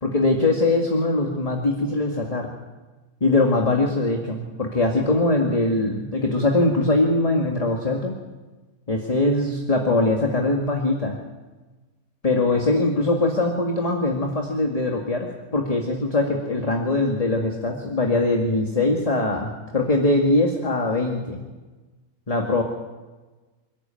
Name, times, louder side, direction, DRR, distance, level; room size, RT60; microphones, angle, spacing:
voice 1, 0.0-2.5 3.2-8.1 8.9-11.2 12.2-21.4 22.3-22.6, left 2 dB, 25° left, 1 dB, 2.2 m, -22 dB
28.0 x 12.5 x 9.0 m, 1.2 s
omnidirectional pair, 1.5 m